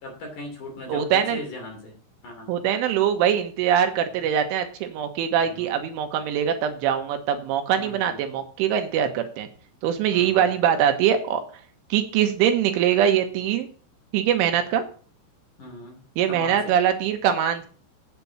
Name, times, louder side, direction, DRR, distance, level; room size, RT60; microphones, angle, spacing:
voice 1, 0.0-2.5 5.4-5.7 7.8-8.2 10.1-10.5 15.6-16.0 16.3-16.8, left 1 dB, 45° left, 1 dB, 3.6 m, -39 dB
voice 2, 0.9-1.4 2.5-9.5 9.8-11.4 11.9-13.7 14.1-14.8 16.2-17.7, right 9 dB, 80° right, 6 dB, 3.3 m, -22 dB
8.2 x 8.2 x 7.0 m, 0.42 s
omnidirectional pair, 6.0 m